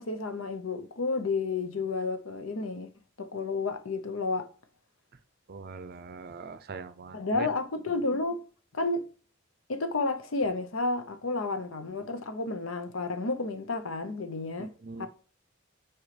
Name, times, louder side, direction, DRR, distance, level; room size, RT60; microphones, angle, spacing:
voice 1, 0.0-2.9 3.2-4.5 7.1-8.5 8.7-9.1 9.7-14.7 15.0-15.1, left 3 dB, 85° left, 0.8 m, -31 dB
voice 2, 5.5-7.5 14.6-15.1, right 4 dB, 50° right, 0.6 m, -42 dB
7.4 x 4.6 x 3.3 m
head